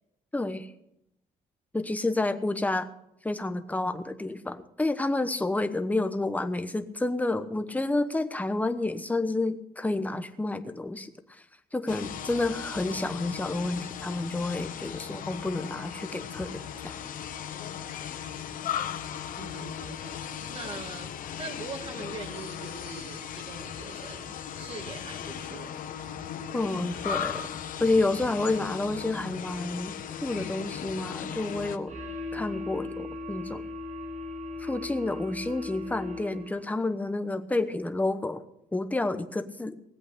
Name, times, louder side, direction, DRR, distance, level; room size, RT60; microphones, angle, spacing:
voice 1, 0.3-0.7 1.7-2.9 3.2-11.4 11.7-16.9 26.5-27.5 27.8-29.9 30.2-32.0 32.3-33.6 34.6-38.4 38.7-39.8, left 2 dB, 10° left, 9 dB, 1.0 m, -29 dB
sound 1, 11.9-31.8, left 9 dB, 65° left, 1.0 m, -37 dB
voice 2, 19.4-20.0 20.5-21.1 21.4-25.7, right 4 dB, 40° right, 5 dB, 1.9 m, -42 dB
sound 2, 31.9-36.7, left 3 dB, 60° right, 5.0 m, -38 dB
18.5 x 8.1 x 6.7 m, 0.81 s
cardioid pair, 120°, 16 cm